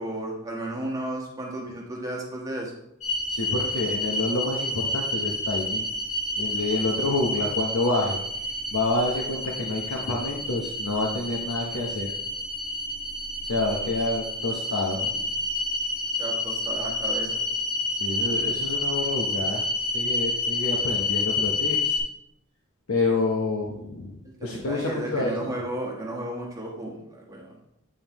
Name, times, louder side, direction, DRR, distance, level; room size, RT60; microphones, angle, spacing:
voice 1, 0.0-2.7 16.2-17.4 24.4-27.5, right 1 dB, 15° right, -3 dB, 1.3 m, -33 dB
sound 1, 3.0-22.0, left 2 dB, 35° left, 1.1 m, -29 dB
voice 2, 3.3-5.9 6.4-8.2 8.7-12.1 13.4-15.3 18.0-19.7 19.9-22.0 22.9-25.5, left 2 dB, 75° left, -1 dB, 0.8 m, -28 dB
8.6 x 5.3 x 3.0 m, 0.82 s
head